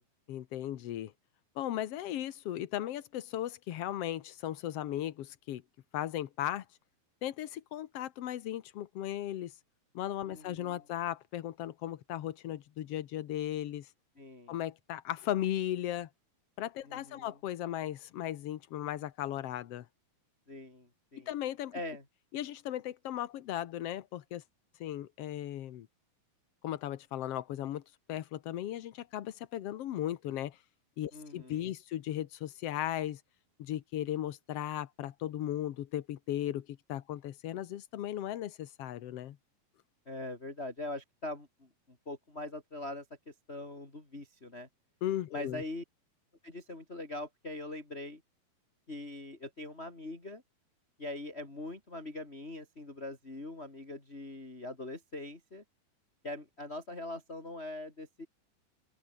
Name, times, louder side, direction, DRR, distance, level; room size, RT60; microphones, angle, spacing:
voice 1, 0.3-1.1 1.6-5.6 5.9-6.6 7.2-9.5 9.9-13.9 14.5-16.1 16.6-19.8 21.3-21.7 22.3-24.4 24.8-25.9 26.6-27.8 28.1-30.6 31.0-33.2 33.6-39.4 45.0-45.6, left 12 dB, 80° left, 1.3 m, -36 dB
voice 2, 10.2-10.8 14.2-14.5 16.9-17.4 20.5-21.3 21.7-22.0 31.1-31.6 40.1-44.7 45.3-45.8 46.4-48.2 48.9-50.4 51.0-55.6 56.2-58.3, left 2 dB, 15° left, 4.1 m, -42 dB
omnidirectional pair, 4.3 m